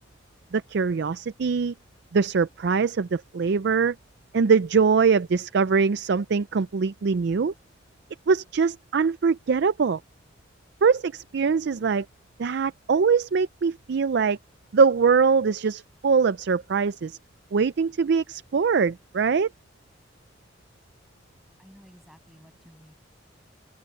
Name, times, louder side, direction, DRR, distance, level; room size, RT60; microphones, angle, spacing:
voice 1, 0.5-1.7 2.1-4.0 4.3-7.5 8.3-10.0 10.8-12.1 12.4-14.4 14.7-17.2 17.5-19.5, right 5 dB, 60° right, 0.4 m, -22 dB
voice 2, 21.6-22.9, equal, ahead, 7.2 m, -53 dB
open air
head